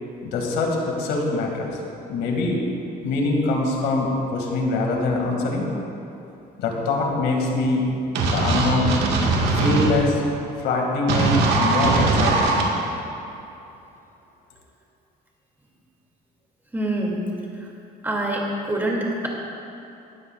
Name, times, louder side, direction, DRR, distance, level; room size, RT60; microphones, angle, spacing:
voice 1, 0.2-1.7 2.1-2.6 3.0-5.7 6.6-7.9 8.3-8.9 9.5-10.2 10.6-12.5, left 3 dB, 85° left, 0 dB, 2.3 m, -23 dB
sound 1, 8.1-9.9 11.1-12.6, right 3 dB, 80° right, 1.8 m, -20 dB
voice 2, 16.7-17.2 18.0-19.3, right 1 dB, 10° right, -2 dB, 2.6 m, -25 dB
19.0 x 12.5 x 2.5 m, 2.8 s
cardioid pair, 110°, 17 cm